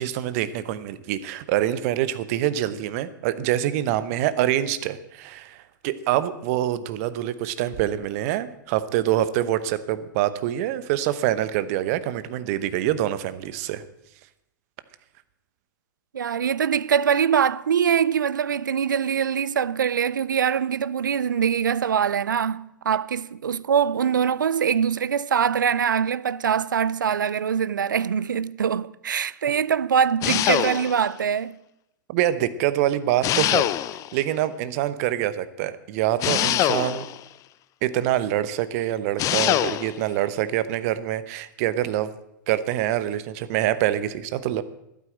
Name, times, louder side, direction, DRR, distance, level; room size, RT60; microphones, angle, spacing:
voice 1, 0.0-13.8 32.1-33.7 34.1-37.1 37.8-42.1 42.5-44.6, right 12 dB, 50° right, 0.9 m, -25 dB
voice 2, 16.1-31.6, right 7 dB, 80° right, 0.4 m, -23 dB
sound 1, 30.2-31.1 33.2-34.2 36.2-37.2 39.2-40.0, left 13 dB, 30° left, 0.5 m, -23 dB
12.0 x 9.2 x 7.7 m
figure-of-eight pair, 100°, 10 cm